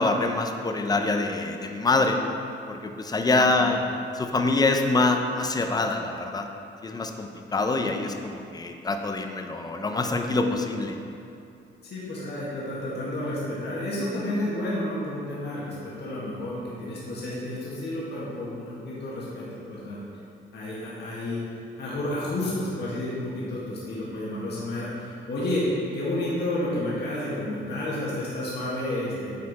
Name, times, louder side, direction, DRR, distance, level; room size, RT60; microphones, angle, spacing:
voice 1, 0.0-2.2 2.7-3.8 4.1-6.5 6.8-11.0, left 3 dB, 20° left, 5 dB, 0.6 m, -25 dB
voice 2, 3.3-3.7 7.6-7.7 11.8-20.0 20.5-21.4 21.8-25.7 25.9-29.4, left 1 dB, 55° left, -7 dB, 1.7 m, -31 dB
8.5 x 4.4 x 4.2 m, 2.6 s
cardioid pair, 90°, 20 cm